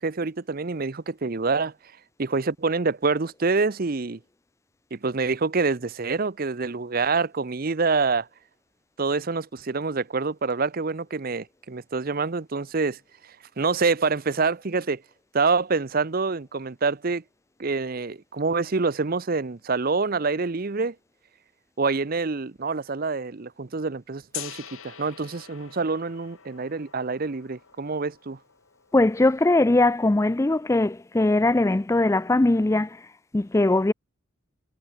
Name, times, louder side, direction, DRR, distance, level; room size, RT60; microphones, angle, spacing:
voice 1, 0.0-1.7 2.2-4.2 4.9-8.3 9.0-15.0 15.3-17.2 17.6-21.0 21.8-28.4, right 4 dB, 45° right, 0.7 m, -26 dB
Gong, 24.3-30.2, left 11 dB, 80° left, 3.5 m, -45 dB
voice 2, 28.9-33.9, left 2 dB, 15° left, 0.4 m, -21 dB
head